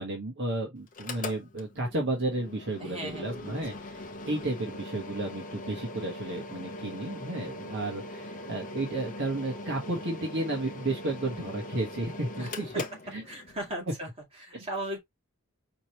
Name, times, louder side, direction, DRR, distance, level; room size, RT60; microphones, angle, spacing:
voice 1, 0.0-3.7 4.2-12.7 13.1-13.2 14.5-14.7, right 2 dB, 55° right, 1.4 m, -32 dB
Mechanical fan, 0.9-13.7, left 2 dB, 35° left, 0.8 m, -41 dB
voice 2, 2.8-3.6 12.4-12.5 13.3-15.0, right 1 dB, 25° right, 2.3 m, -37 dB
5.2 x 3.1 x 3.1 m
head